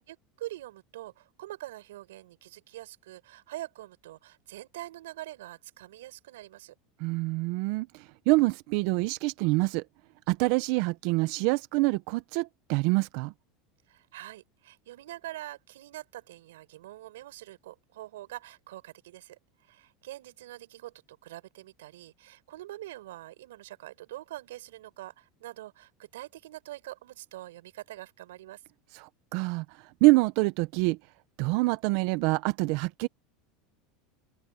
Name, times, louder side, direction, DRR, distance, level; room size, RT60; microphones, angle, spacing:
voice 1, 0.1-6.7 13.9-19.4 19.7-28.6, right 15 dB, 90° right, 6.7 m, -44 dB
voice 2, 7.0-9.8 10.3-13.3 28.9-29.6 30.0-31.0 31.4-33.1, right 23 dB, 65° right, 0.8 m, -26 dB
open air
supercardioid pair, 125°, 0 cm